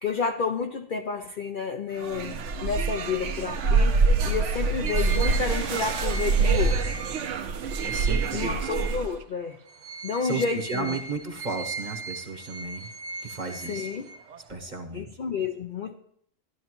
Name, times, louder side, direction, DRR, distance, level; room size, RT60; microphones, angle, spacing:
voice 1, 0.0-7.0 8.3-9.6 10.0-11.0 13.7-14.1 14.9-15.9, left 5 dB, 55° left, 5 dB, 0.5 m, -30 dB
sound 1, 2.0-9.2, right 4 dB, 70° right, 1.0 m, -25 dB
sound 2, 4.9-9.2 9.6-14.5, right 4 dB, 90° right, 0.3 m, -38 dB
voice 2, 7.8-8.8 10.2-12.9 13.2-13.9 14.5-15.1, right 4 dB, 40° right, 3 dB, 1.0 m, -34 dB
13.0 x 11.5 x 3.0 m, 0.69 s
omnidirectional pair, 1.4 m